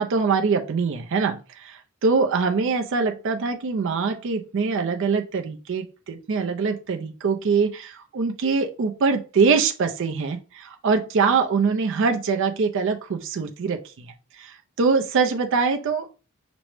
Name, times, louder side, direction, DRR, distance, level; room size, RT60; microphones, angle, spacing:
voice 1, 0.0-13.8 14.4-16.2, right 5 dB, 60° right, 5 dB, 0.4 m, -23 dB
5.9 x 2.0 x 3.1 m, 0.34 s
head